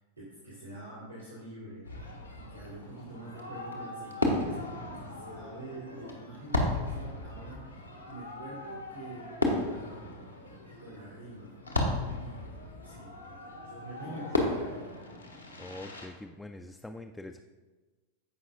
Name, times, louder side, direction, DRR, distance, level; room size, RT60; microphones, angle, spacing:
voice 1, 0.2-1.9 2.3-10.4 10.7-11.6 11.9-12.5 12.8-13.1 13.6-15.0, right 1 dB, 85° right, -8 dB, 2.3 m, -46 dB
Fireworks, 1.8-16.1, left 1 dB, 85° left, 1.2 m, -35 dB
voice 2, 15.6-17.4, left 2 dB, 5° left, 5 dB, 0.3 m, -44 dB
15.5 x 5.4 x 2.5 m, 1.3 s
figure-of-eight pair, 90°, 0 cm